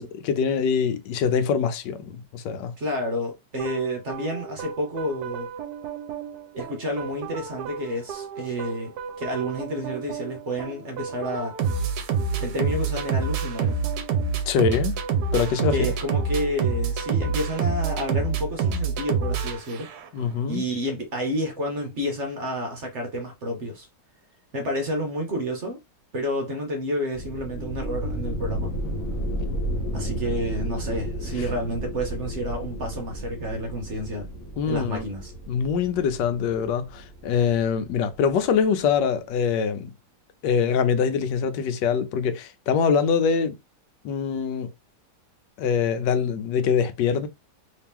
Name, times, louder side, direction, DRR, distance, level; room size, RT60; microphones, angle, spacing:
voice 1, 0.2-2.7 14.5-15.0 15.3-15.8 20.1-20.6 31.4-31.5 34.6-35.0 35.5-39.9 40.4-43.5 44.0-44.7 45.6-47.3, left 6 dB, 80° left, 1.2 m, -24 dB
voice 2, 2.8-5.5 6.5-11.6 12.4-13.8 15.7-19.9 20.5-23.9 24.5-25.8 26.1-28.7 29.9-34.3 34.7-35.3, equal, 50° right, 1.0 m, -30 dB
sound 1, 3.6-20.2, right 5 dB, 75° right, 1.2 m, -28 dB
sound 2, 27.1-38.6, right 1 dB, 40° left, 1.4 m, -33 dB
3.2 x 2.9 x 3.5 m
omnidirectional pair, 1.9 m